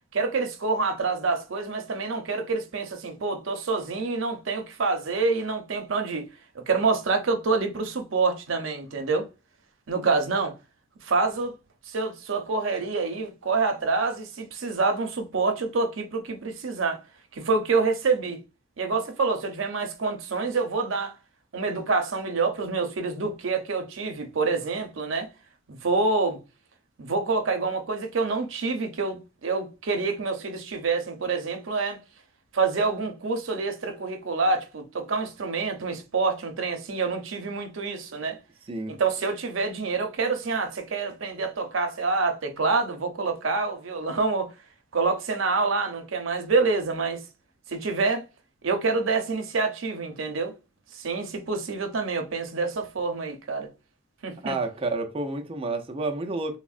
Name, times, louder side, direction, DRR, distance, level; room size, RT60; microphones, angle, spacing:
voice 1, 0.1-6.3 6.5-9.2 9.9-10.5 11.0-11.5 11.9-17.0 17.3-18.4 18.8-21.2 21.5-25.3 25.7-26.4 27.0-32.0 32.5-38.4 38.9-44.5 44.9-47.2 47.7-48.2 48.6-50.5 50.9-53.7 54.2-54.6, right 4 dB, 80° right, 0.6 m, -27 dB
voice 2, 38.7-39.0 54.4-56.6, right 2 dB, 30° right, 0.4 m, -30 dB
3.5 x 2.1 x 2.3 m
head